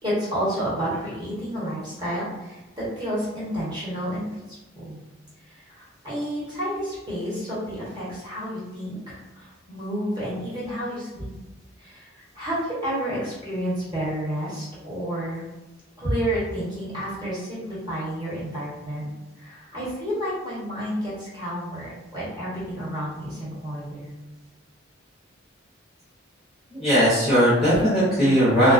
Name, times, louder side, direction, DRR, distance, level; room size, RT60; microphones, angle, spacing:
voice 1, 0.0-5.0 5.5-11.3 11.8-15.4 16.0-19.1 19.4-24.1, equal, 20° right, -9 dB, 1.1 m, -30 dB
voice 2, 26.7-28.7, equal, ahead, -12 dB, 0.7 m, -18 dB
2.3 x 2.2 x 2.4 m, 1.1 s
head